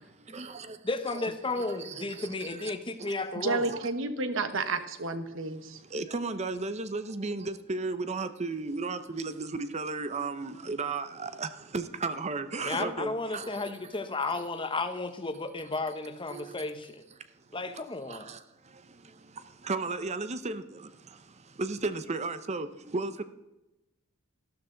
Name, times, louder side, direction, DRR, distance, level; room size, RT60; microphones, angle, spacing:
voice 1, 0.2-0.8 1.1-1.2 1.6-2.7 3.0-3.1 3.7-3.8 5.9-13.8 16.3-16.5 17.7-17.8 18.1-23.2, right 3 dB, 30° right, 11 dB, 0.7 m, -35 dB
voice 2, 0.8-3.7 12.6-17.0 17.5-18.3, left 3 dB, 25° left, 9 dB, 1.0 m, -33 dB
voice 3, 3.4-5.8, right 3 dB, 65° right, 10 dB, 1.1 m, -31 dB
13.5 x 12.5 x 3.9 m, 0.96 s
head